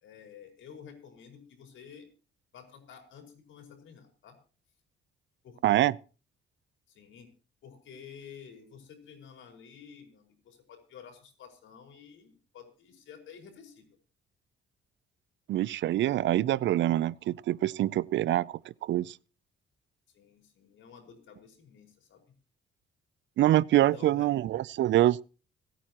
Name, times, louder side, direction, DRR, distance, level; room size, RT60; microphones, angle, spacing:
voice 1, 0.0-2.1 2.5-4.4 5.4-5.9 6.9-7.3 7.6-13.9 20.1-22.2 23.9-24.3, left 7 dB, 75° left, 4.9 m, -51 dB
voice 2, 5.6-5.9 15.5-19.2 23.4-25.2, right 14 dB, 70° right, 0.5 m, -25 dB
26.0 x 9.1 x 3.0 m
cardioid pair, 90°, 20 cm